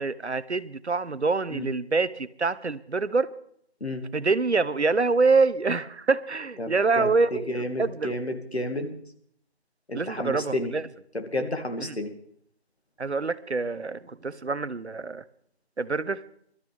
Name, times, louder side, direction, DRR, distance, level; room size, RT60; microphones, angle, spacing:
voice 1, 0.0-3.3 4.1-8.1 9.9-10.8 11.8-12.0 13.0-15.2 15.8-16.2, right 4 dB, 90° right, 15 dB, 1.0 m, -26 dB
voice 2, 7.0-8.9 9.9-10.7 11.1-12.1, left 1 dB, 75° left, 5 dB, 2.5 m, -31 dB
22.5 x 12.5 x 3.5 m, 0.65 s
figure-of-eight pair, 175°, 32 cm